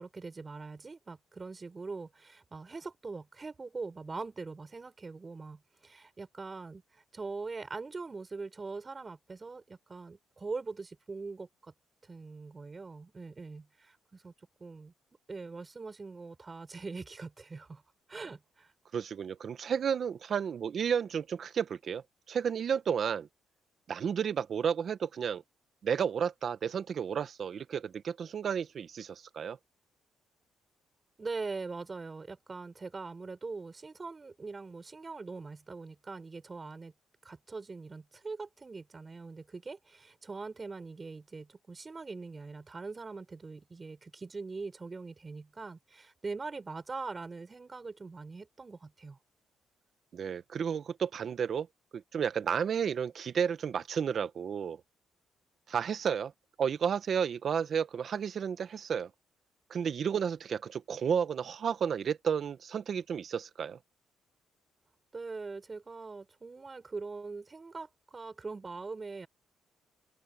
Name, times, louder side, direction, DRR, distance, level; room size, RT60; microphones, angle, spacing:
voice 1, 0.0-6.8 7.1-11.7 12.1-14.3 14.6-14.9 15.3-17.8 18.1-18.7 31.2-36.9 37.2-49.2 65.1-69.3, right 4 dB, 30° right, 7.1 m, -42 dB
voice 2, 18.9-23.3 23.9-25.4 25.8-29.6 50.1-51.7 51.9-54.8 55.7-56.3 56.6-59.1 59.7-63.8, right 7 dB, 55° right, 1.5 m, -32 dB
open air
cardioid pair, 90°, 0 cm